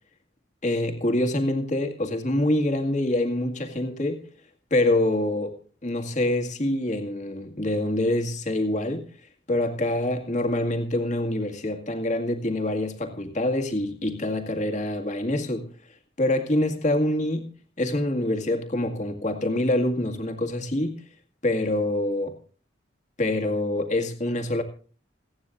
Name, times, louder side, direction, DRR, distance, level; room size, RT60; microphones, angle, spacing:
voice 1, 0.6-4.2 4.7-5.6 5.8-9.1 9.5-15.7 16.2-17.5 17.8-21.0 21.4-22.3 23.2-24.6, left 1 dB, 40° left, 2.0 m, -25 dB
28.0 x 9.5 x 2.6 m
head